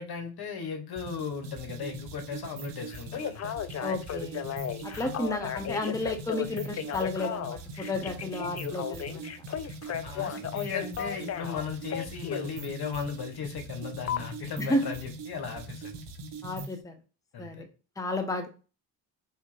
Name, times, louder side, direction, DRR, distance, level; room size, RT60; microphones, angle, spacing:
voice 1, 0.0-3.5 10.0-16.0 17.3-17.6, left 6 dB, 55° left, 6 dB, 0.9 m, -37 dB
sound 1, 1.0-16.8, right 3 dB, 65° right, 1.1 m, -41 dB
Telephone, 2.9-12.5 14.1-14.2, left 9 dB, 35° left, 0.4 m, -35 dB
voice 2, 3.8-4.5 4.8-9.3 14.6-14.8 16.4-16.9 17.4-17.7 18.0-18.5, left 2 dB, 5° left, 6 dB, 0.7 m, -32 dB
3.4 x 2.8 x 3.0 m, 0.34 s
supercardioid pair, 65°, 46 cm